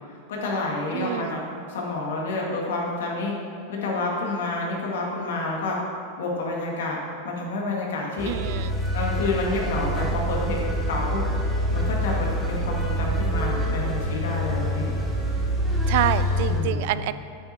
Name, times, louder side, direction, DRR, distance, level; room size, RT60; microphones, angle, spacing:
voice 1, 0.1-1.4 1.6-3.3 3.7-5.8 6.2-7.0 7.2-8.3 8.9-11.2 11.7-15.0 16.4-16.9, left 2 dB, 85° left, -2 dB, 1.9 m, -29 dB
voice 2, 0.9-1.3 8.2-8.7 15.9-17.1, right 13 dB, 50° right, 14 dB, 0.3 m, -27 dB
sound 1, 8.2-16.6, equal, 5° right, 1.0 m, -26 dB
8.6 x 8.1 x 4.4 m, 2.5 s
supercardioid pair, 175°, 0 cm